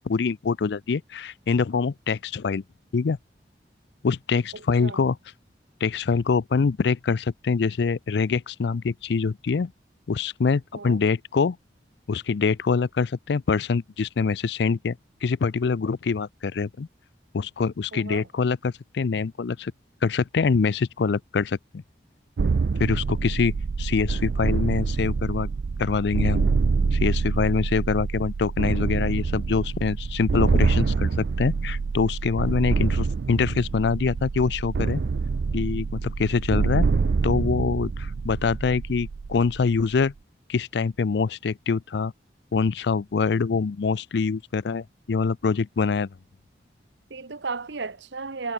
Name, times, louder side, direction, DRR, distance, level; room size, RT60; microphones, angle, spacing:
voice 1, 0.0-2.6 2.9-3.2 4.0-5.2 5.8-9.7 10.1-11.6 12.1-15.0 15.2-16.9 17.3-19.7 20.0-21.6 22.8-25.5 25.8-26.5 26.9-35.0 35.5-36.9 37.2-40.1 40.5-42.1 42.5-46.1, left 5 dB, 70° left, 0.4 m, -24 dB
voice 2, 4.5-5.1 10.7-11.0 17.9-18.3 47.1-48.5, right 4 dB, 85° right, 1.2 m, -34 dB
Bass Drums, 22.4-40.0, right 4 dB, 70° right, 0.4 m, -26 dB
head